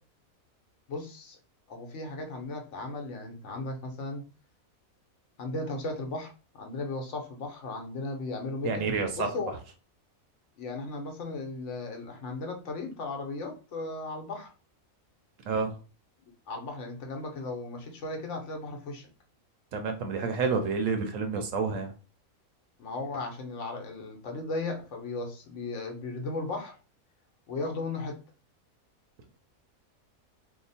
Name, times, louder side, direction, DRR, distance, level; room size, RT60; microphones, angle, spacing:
voice 1, 0.9-1.4 1.7-4.2 5.4-6.3 6.6-9.6 10.6-14.5 16.5-19.1 22.8-26.8 27.5-28.2, left 2 dB, 60° left, 3 dB, 1.1 m, -36 dB
voice 2, 8.6-9.3 15.5-15.7 19.7-21.9, right 4 dB, 70° right, 6 dB, 0.9 m, -29 dB
2.9 x 2.1 x 4.0 m, 0.34 s
omnidirectional pair, 1.5 m